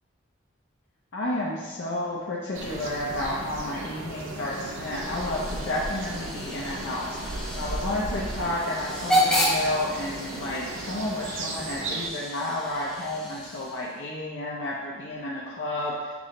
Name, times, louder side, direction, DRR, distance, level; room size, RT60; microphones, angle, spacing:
voice 1, 1.1-7.3 7.5-16.1, left 1 dB, 65° left, -5 dB, 0.5 m, -31 dB
sound 1, 2.5-12.1, right 2 dB, 75° right, 0.5 m, -35 dB
Hiss / Train / Alarm, 4.4-14.0, equal, 5° left, 0.5 m, -32 dB
6.1 x 2.0 x 3.7 m, 1.3 s
head